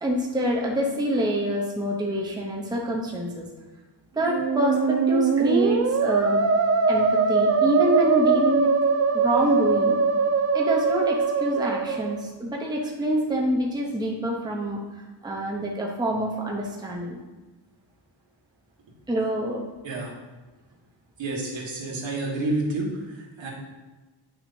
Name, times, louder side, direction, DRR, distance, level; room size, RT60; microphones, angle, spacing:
voice 1, 0.0-3.5 4.1-6.5 6.9-8.7 9.1-10.0 10.5-14.8 15.2-17.2 19.1-19.6, right 1 dB, 10° right, -2 dB, 0.8 m, -26 dB
Musical instrument, 4.2-12.2, right 5 dB, 35° right, 0.5 m, -22 dB
voice 2, 21.2-23.5, right 2 dB, 75° right, -3 dB, 1.8 m, -29 dB
8.8 x 6.1 x 2.7 m, 1.2 s
wide cardioid pair, 155°, 46 cm